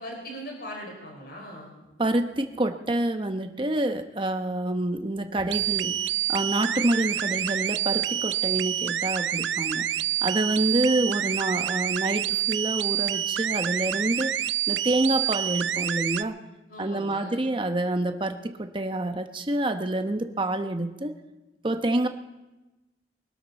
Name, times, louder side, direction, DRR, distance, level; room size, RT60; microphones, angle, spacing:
voice 1, 0.0-1.7 16.7-17.5, equal, 55° left, 0 dB, 4.6 m, -39 dB
voice 2, 2.0-6.0 6.3-9.9 10.2-14.3 14.7-16.4 16.8-21.1 21.6-22.1, right 1 dB, 25° right, 7 dB, 0.9 m, -27 dB
sound 1, 5.5-16.2, right 11 dB, 80° right, 0.5 m, -27 dB
23.5 x 12.5 x 4.1 m, 1.1 s
head